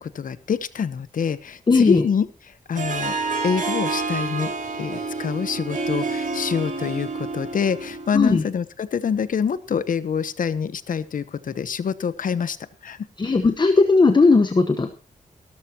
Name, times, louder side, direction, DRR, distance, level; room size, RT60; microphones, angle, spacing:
voice 1, 0.0-2.3 2.7-3.1 3.4-4.5 4.8-12.6 12.8-13.0, left 6 dB, 75° left, 15 dB, 1.0 m, -25 dB
voice 2, 1.7-2.0 8.1-8.4 13.2-14.9, left 3 dB, 35° left, 8 dB, 1.1 m, -17 dB
Harp, 2.8-8.2, right 3 dB, 70° right, 4.6 m, -28 dB
17.0 x 13.0 x 2.9 m, 0.35 s
wide cardioid pair, 120°, 14 cm